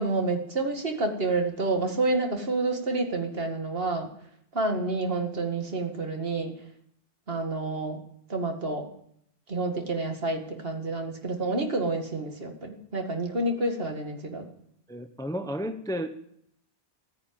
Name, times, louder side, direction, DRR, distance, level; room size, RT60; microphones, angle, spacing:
voice 1, 0.0-4.1 4.5-6.5 7.3-8.0 8.3-8.9 9.5-14.5, right 2 dB, 55° right, 4 dB, 2.2 m, -29 dB
voice 2, 14.9-16.1, equal, 5° left, 8 dB, 0.8 m, -32 dB
14.0 x 9.9 x 8.7 m, 0.69 s
omnidirectional pair, 1.2 m